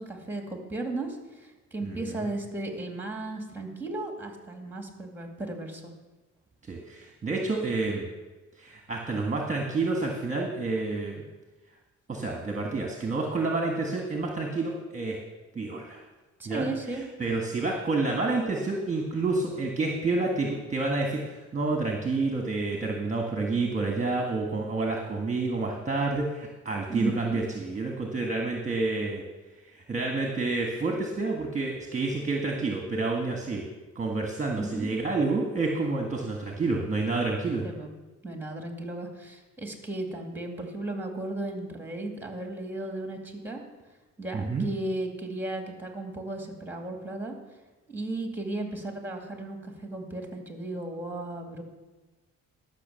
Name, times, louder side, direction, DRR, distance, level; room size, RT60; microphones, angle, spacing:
voice 1, 0.0-5.9 16.4-17.0 26.9-27.4 34.5-34.9 37.6-37.9 38.2-43.6 44.2-47.4 47.9-51.6, right 2 dB, 5° right, 3 dB, 2.3 m, -35 dB
voice 2, 1.8-2.3 6.7-8.1 8.6-11.2 12.1-15.2 15.5-16.0 16.4-29.2 29.7-33.7 33.9-37.6 44.3-44.7, right 3 dB, 25° right, 0 dB, 1.6 m, -29 dB
12.0 x 6.0 x 7.0 m, 1.2 s
cardioid pair, 90°, 30 cm